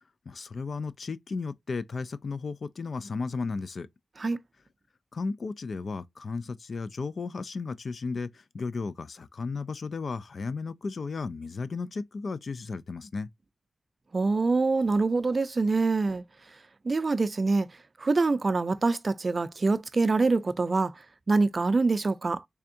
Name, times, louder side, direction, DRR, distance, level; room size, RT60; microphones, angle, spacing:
voice 1, 0.3-3.9 5.1-13.3, left 4 dB, 65° left, 0.3 m, -34 dB
voice 2, 14.1-16.2 16.8-17.7 18.0-22.4, right 3 dB, 45° right, 0.4 m, -25 dB
3.5 x 3.4 x 2.6 m
cardioid pair, 65°, 0 cm